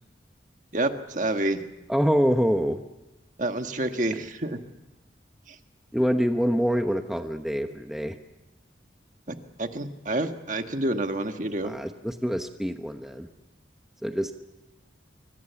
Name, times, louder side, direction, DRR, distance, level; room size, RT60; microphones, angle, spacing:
voice 1, 0.7-1.6 3.4-4.6 5.5-5.6 9.3-11.8, right 1 dB, 40° right, 6 dB, 1.6 m, -28 dB
voice 2, 1.9-2.8 5.9-8.2 11.6-13.3 14.0-14.3, equal, ahead, 5 dB, 0.9 m, -25 dB
26.0 x 24.5 x 7.1 m, 1.0 s
head